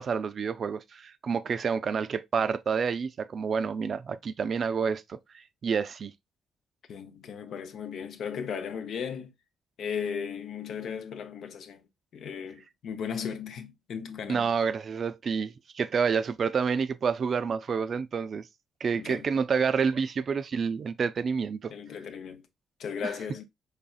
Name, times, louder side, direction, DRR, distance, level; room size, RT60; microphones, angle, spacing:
voice 1, 0.0-5.2 5.6-6.1 14.3-18.4 18.8-21.7 23.0-23.1, right 6 dB, 50° right, 0.3 m, -28 dB
voice 2, 6.9-9.3 9.8-11.9 12.1-14.5 19.0-19.3 21.7-22.4 22.8-23.4, left 7 dB, 65° left, 0.6 m, -36 dB
4.1 x 3.3 x 2.3 m
cardioid pair, 90°, 0 cm